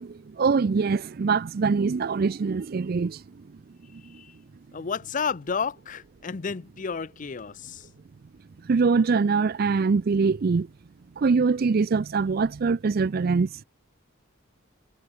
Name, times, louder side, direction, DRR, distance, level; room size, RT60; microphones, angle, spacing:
voice 1, 0.0-3.2 3.9-4.2 8.6-10.7 11.2-13.5, right 4 dB, 50° right, 0.4 m, -23 dB
voice 2, 3.9-4.4 4.7-7.9, left 6 dB, 40° left, 0.6 m, -32 dB
head